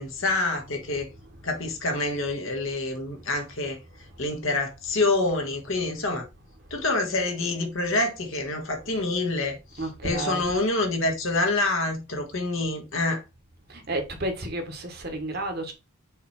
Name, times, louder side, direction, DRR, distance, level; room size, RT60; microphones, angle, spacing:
voice 1, 0.0-1.1 1.4-3.8 4.2-6.2 6.7-13.2, left 2 dB, 65° left, 1.6 m, -27 dB
voice 2, 0.9-1.6 3.3-3.4 3.9-4.3 6.6-6.7 8.8-8.9 9.7-10.5 13.7-15.7, right 1 dB, 45° right, 1.3 m, -33 dB
6.6 x 3.3 x 4.3 m
head